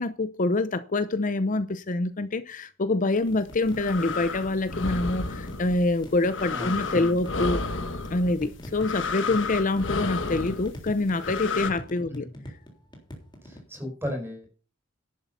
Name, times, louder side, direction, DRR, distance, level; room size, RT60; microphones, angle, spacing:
voice 1, 0.0-7.6 8.1-12.3, left 2 dB, 45° left, 0.7 m, -26 dB
sound 1, 3.3-11.7, left 4 dB, 80° left, 1.4 m, -32 dB
sound 2, 3.3-4.1 4.4-5.8 6.0-13.7, equal, 25° left, 3.5 m, -43 dB
voice 2, 6.5-7.1 12.3-12.4 13.4-14.4, left 1 dB, 15° right, 4.7 m, -35 dB
11.5 x 7.9 x 5.6 m
head